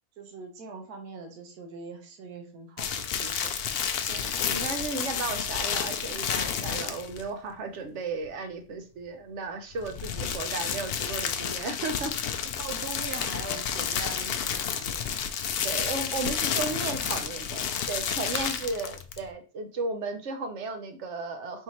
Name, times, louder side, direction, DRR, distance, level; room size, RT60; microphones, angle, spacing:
voice 1, 0.2-3.6 12.4-15.1 18.3-18.7, right 4 dB, 80° right, 4 dB, 1.4 m, -42 dB
sound 1, 2.8-7.3 9.7-19.3, left 7 dB, 85° left, 0.5 m, -31 dB
voice 2, 4.1-12.1 15.6-21.6, right 3 dB, 55° right, 6 dB, 1.0 m, -35 dB
4.4 x 3.5 x 3.0 m, 0.36 s
omnidirectional pair, 1.6 m